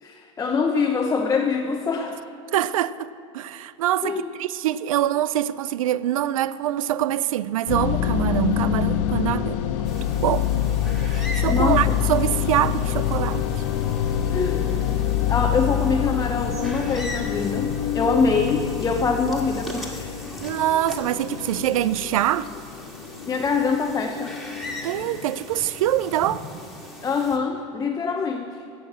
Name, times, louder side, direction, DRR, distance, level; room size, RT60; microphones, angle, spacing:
voice 1, 0.0-2.2 4.0-4.3 11.5-11.8 14.3-14.7 15.3-20.1 23.3-24.3 27.0-28.6, left 4 dB, 20° left, 0.7 m, -24 dB
voice 2, 2.5-3.1 3.3-9.6 10.2-10.5 11.1-13.5 20.4-22.5 24.8-26.5, right 12 dB, 85° right, 0.4 m, -24 dB
sound 1, 7.7-26.0, left 10 dB, 65° left, 0.8 m, -26 dB
sound 2, 9.8-27.4, left 1 dB, ahead, 1.9 m, -40 dB
16.5 x 5.8 x 7.4 m
supercardioid pair, 110°, 17 cm